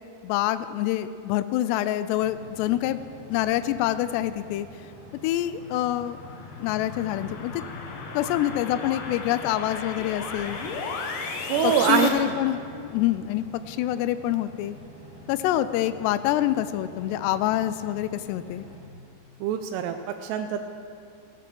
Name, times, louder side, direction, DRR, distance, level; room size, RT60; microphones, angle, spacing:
voice 1, 0.2-3.0 3.3-4.7 5.2-6.2 6.6-7.6 8.1-10.6 11.6-14.8 15.3-18.7, left 13 dB, 85° left, 13 dB, 2.7 m, -26 dB
sound 1, 2.2-18.8, left 1 dB, 40° left, 4.5 m, -47 dB
sound 2, 5.6-12.1, left 4 dB, 65° left, 2.4 m, -35 dB
voice 2, 11.5-12.3 19.4-20.0 20.2-20.7, right 8 dB, 85° right, 6 dB, 2.7 m, -24 dB
16.5 x 9.2 x 6.2 m, 2.5 s
omnidirectional pair, 4.8 m